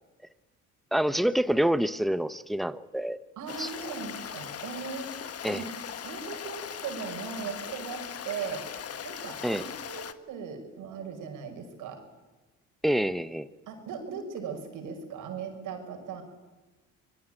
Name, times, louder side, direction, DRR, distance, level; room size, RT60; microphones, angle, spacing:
voice 1, 0.9-3.2 3.6-3.7 5.4-5.6 9.4-9.6 12.8-13.5, right 1 dB, ahead, 13 dB, 1.0 m, -27 dB
voice 2, 3.4-5.2 5.5-5.6 6.0-8.6 9.0-12.0 13.7-16.2, right 6 dB, 90° right, 5 dB, 5.9 m, -38 dB
Stream, 3.5-10.1, left 8 dB, 50° left, 1.6 m, -39 dB
25.5 x 21.0 x 9.1 m, 1.2 s
cardioid pair, 90°, 30 cm